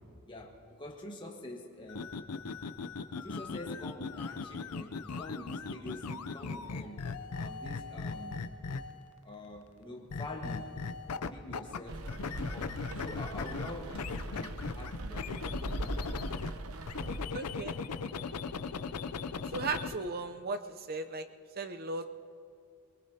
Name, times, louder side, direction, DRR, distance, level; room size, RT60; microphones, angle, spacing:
voice 1, 0.3-2.1 3.2-7.0 7.4-8.4 9.2-10.7 11.2-15.3, left 1 dB, 20° left, 0 dB, 1.4 m, -46 dB
sound 1, 1.9-9.1 10.1-11.8 12.1-16.5 16.9-19.9, left 4 dB, 90° left, 0.6 m, -38 dB
Rain, 11.9-17.2, right 2 dB, 70° right, 0.8 m, -40 dB
voice 2, 17.3-17.8 19.5-20.6 20.9-21.2 21.6-22.1, right 3 dB, 45° right, 9 dB, 0.6 m, -36 dB
23.0 x 22.5 x 2.8 m, 2.4 s
head